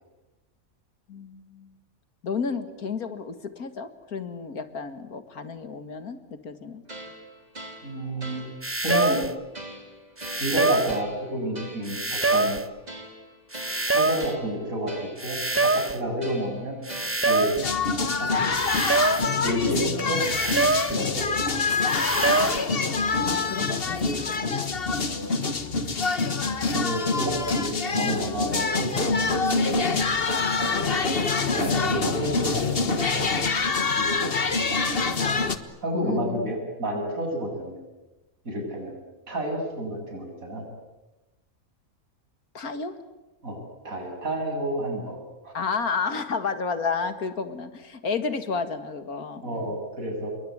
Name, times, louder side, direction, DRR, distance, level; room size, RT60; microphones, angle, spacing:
voice 1, 1.1-1.7 2.2-6.8 19.6-20.2 22.4-25.3 36.0-36.5 42.5-43.0 45.5-49.8, left 5 dB, 80° left, 10 dB, 2.4 m, -32 dB
sound 1, 6.9-17.5, right 1 dB, 30° right, 3.7 m, -43 dB
voice 2, 7.8-8.4 8.8-9.2 10.4-12.6 13.9-14.9 15.2-16.7 17.2-17.6 18.2-18.5 18.7-18.8 19.4-20.2 20.9-21.3 25.7-25.8 26.6-29.2 29.5-29.8 30.6-31.0 31.5-35.3 35.8-37.8 38.4-39.0 39.3-40.6 43.4-43.6 43.8-45.2 45.4-45.5 49.4-50.3, equal, 65° right, 2 dB, 8.2 m, -30 dB
sound 2, 8.6-9.3 10.2-11.0 11.9-12.7 13.5-14.3 15.2-16.0 16.9-17.7 18.5-19.3 20.2-21.0 21.9-22.7, right 3 dB, 10° right, 0.9 m, -25 dB
sound 3, 17.6-35.6, left 4 dB, 40° left, 1.6 m, -25 dB
28.0 x 22.5 x 9.5 m, 1.0 s
omnidirectional pair, 1.5 m